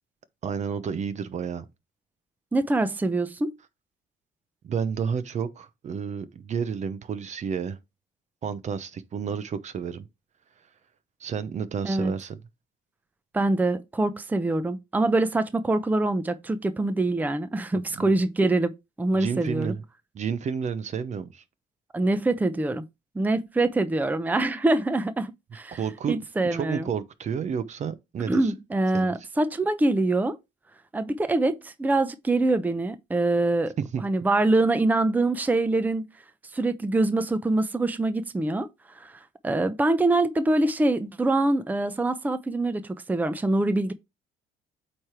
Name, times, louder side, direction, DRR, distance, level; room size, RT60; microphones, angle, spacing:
voice 1, 0.4-1.7 4.6-7.8 8.4-10.1 11.2-12.4 17.7-18.2 19.1-19.8 20.1-21.4 25.7-26.2 26.5-28.5 28.9-29.1 33.9-34.0, right 7 dB, 45° right, 0.8 m, -31 dB
voice 2, 2.5-3.5 11.8-12.1 13.3-19.8 21.9-22.8 23.1-25.8 26.1-26.9 28.3-30.4 30.9-33.7 34.0-36.0 36.5-43.9, right 2 dB, 10° right, 0.6 m, -24 dB
8.5 x 3.3 x 4.5 m
cardioid pair, 110°, 17 cm